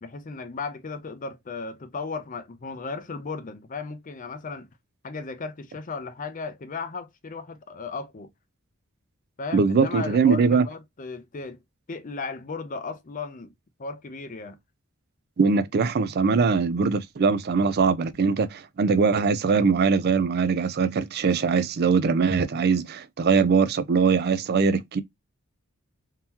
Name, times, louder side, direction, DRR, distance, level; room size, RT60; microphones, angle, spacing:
voice 1, 0.0-4.7 5.0-8.3 9.4-11.6 11.9-13.5 13.8-14.6, left 4 dB, 35° left, 0.5 m, -35 dB
voice 2, 9.5-10.6 15.4-25.0, right 5 dB, 45° right, 0.4 m, -22 dB
3.7 x 2.8 x 2.8 m
head